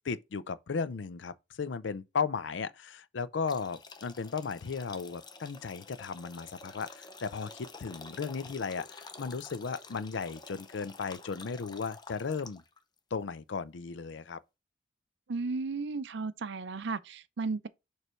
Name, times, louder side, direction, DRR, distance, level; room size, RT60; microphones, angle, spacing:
voice 1, 0.0-12.6 13.1-14.4, left 5 dB, 75° left, 0.5 m, -35 dB
sound 1, 3.5-12.8, left 4 dB, 25° left, 0.7 m, -49 dB
voice 2, 15.3-17.7, right 4 dB, 70° right, 0.5 m, -34 dB
6.7 x 3.3 x 4.4 m
head